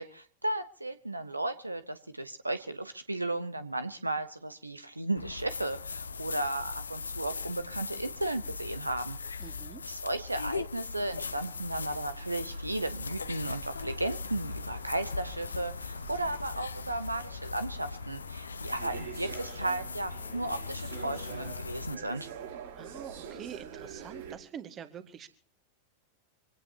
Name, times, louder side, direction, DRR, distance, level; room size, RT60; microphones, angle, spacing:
voice 1, 0.0-9.2 9.8-22.3, right 2 dB, 85° right, 12 dB, 0.9 m, -35 dB
sound 1, 5.2-22.0, left 5 dB, 75° left, 0.8 m, -39 dB
voice 2, 9.4-9.8 22.8-25.3, right 8 dB, 30° right, 9 dB, 1.9 m, -45 dB
sound 2, 10.9-24.4, right 6 dB, 65° right, 6.1 m, -47 dB
25.5 x 17.5 x 2.8 m, 0.42 s
figure-of-eight pair, 90°, 0 cm